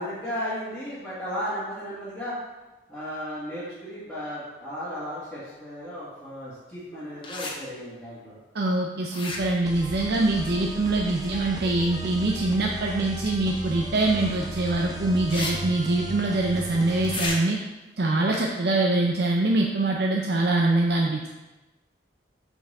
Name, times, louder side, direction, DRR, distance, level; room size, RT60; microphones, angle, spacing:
voice 1, 0.0-2.3 2.9-8.4, equal, 5° left, -13 dB, 1.8 m, -35 dB
sound 1, 7.2-7.5 9.1-9.7 13.2-13.3 15.3-15.5 15.8-15.9 17.0-17.4, left 3 dB, 25° left, 0.8 m, -32 dB
voice 2, 8.5-17.6 18.0-21.3, right 2 dB, 55° right, 0 dB, 0.5 m, -24 dB
sound 2, 9.7-17.3, right 1 dB, 20° right, 0.7 m, -35 dB
5.9 x 5.5 x 4.1 m, 1.1 s
head